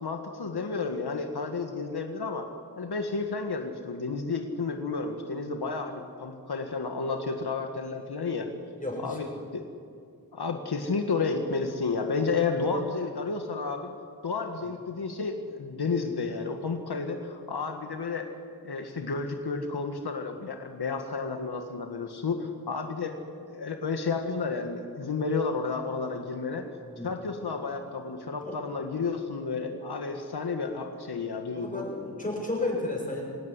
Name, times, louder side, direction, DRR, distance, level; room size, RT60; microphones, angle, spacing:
voice 1, 0.0-2.5 2.8-8.5 9.0-9.7 10.3-13.9 14.2-18.3 18.6-23.1 23.5-26.7 27.0-31.9, left 4 dB, 75° left, 4 dB, 1.8 m, -31 dB
voice 2, 8.7-9.2 26.8-27.1 28.4-28.5 31.5-33.2, left 2 dB, 20° left, -2 dB, 7.7 m, -32 dB
26.0 x 17.5 x 9.9 m, 2.3 s
wide cardioid pair, 80°, 39 cm